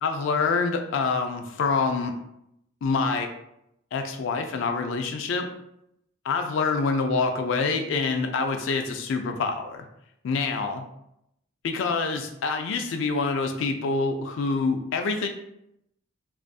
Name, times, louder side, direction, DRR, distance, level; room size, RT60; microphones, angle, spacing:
voice 1, 0.0-2.1 2.8-3.3 3.9-5.5 6.2-9.9 10.2-10.8 11.6-15.3, left 4 dB, 60° left, 5 dB, 0.3 m, -26 dB
2.5 x 2.4 x 2.2 m, 0.78 s
head